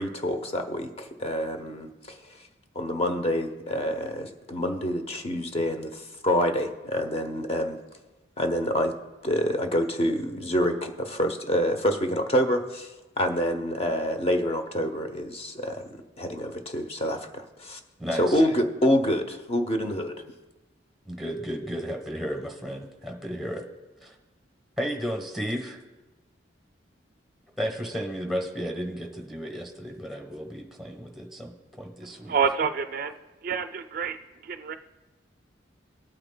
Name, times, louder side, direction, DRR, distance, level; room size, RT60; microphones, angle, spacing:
voice 1, 0.0-2.2 2.7-7.8 8.4-8.9 9.2-12.9 13.2-15.9 16.2-17.8 18.2-20.2, equal, 30° left, 6 dB, 0.7 m, -27 dB
voice 2, 18.0-18.4 21.0-23.6 24.0-24.1 24.8-25.8 27.6-32.4, equal, ahead, 3 dB, 1.0 m, -33 dB
voice 3, 32.3-33.1 33.4-34.2 34.4-34.8, right 6 dB, 50° right, 8 dB, 0.3 m, -27 dB
19.0 x 8.8 x 2.2 m, 1.1 s
head